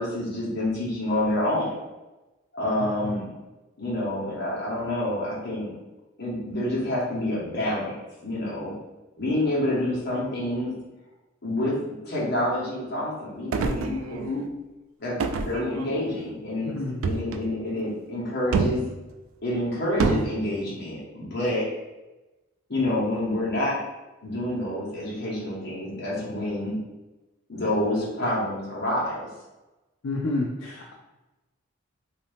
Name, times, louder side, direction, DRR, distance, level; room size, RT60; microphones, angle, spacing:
voice 1, 0.0-1.8 2.5-3.3 3.8-5.7 6.2-8.0 8.2-8.7 9.2-10.7 11.4-14.5 15.0-16.7 17.0-18.8 19.4-21.6 22.7-23.8 24.2-26.8 27.5-29.3, left 1 dB, 50° left, -6 dB, 1.1 m, -28 dB
sound 1, 13.5-14.4 15.2-16.2 17.0-17.5 18.5-18.9 20.0-20.3, right 4 dB, 75° right, 0.3 m, -27 dB
voice 2, 16.6-17.0 30.0-30.9, left 2 dB, 70° left, -2 dB, 0.4 m, -29 dB
2.7 x 2.7 x 3.4 m, 1.1 s
head